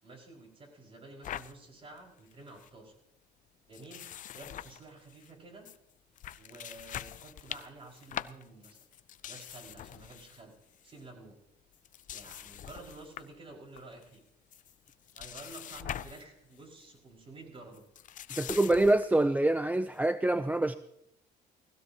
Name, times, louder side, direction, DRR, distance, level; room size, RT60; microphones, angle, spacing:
voice 1, 0.0-3.0 3.7-5.7 6.4-8.8 9.2-10.5 10.8-11.4 12.1-14.2 15.1-17.8, right 2 dB, 35° right, 5.5 m, -51 dB
sound 1, 1.2-1.5 2.0-2.1 2.3-2.7 3.7-5.3 5.6-5.8 6.2-10.4 10.7-11.0 11.7-13.4 13.8-14.2 14.5-16.3 16.6-16.8 17.7-19.1, left 11 dB, 50° left, 0.6 m, -43 dB
voice 2, 18.4-20.8, right 2 dB, 10° right, 0.5 m, -26 dB
19.5 x 16.0 x 2.9 m
cardioid pair, 110°, 17 cm